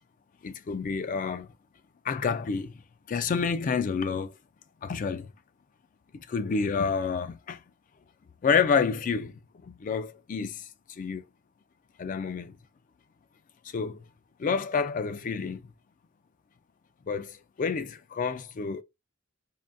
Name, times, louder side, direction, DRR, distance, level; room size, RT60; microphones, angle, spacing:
voice 1, 0.4-1.5 2.0-2.7 3.1-4.4 4.8-5.3 6.3-7.6 8.4-10.7 11.0-11.2 12.0-12.6 13.7-14.0 14.4-15.6 17.1-18.8, left 5 dB, 40° left, 0.3 m, -29 dB
3.6 x 2.2 x 2.5 m
head